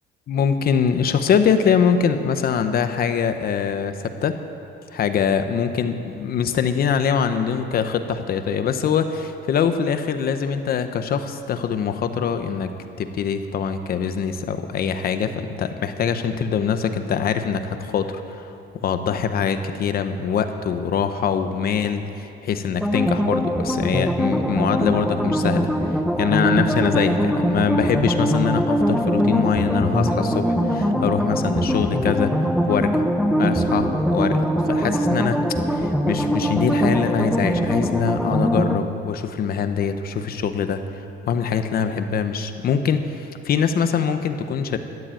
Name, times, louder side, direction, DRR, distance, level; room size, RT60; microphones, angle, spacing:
voice 1, 0.3-4.4 4.9-18.6 18.8-32.3 32.7-33.0 33.3-44.8, left 7 dB, 50° left, 9 dB, 0.9 m, -23 dB
sound 1, 22.8-38.8, equal, ahead, 0.7 m, -22 dB
13.5 x 10.0 x 9.1 m, 2.8 s
cardioid pair, 170°, 20 cm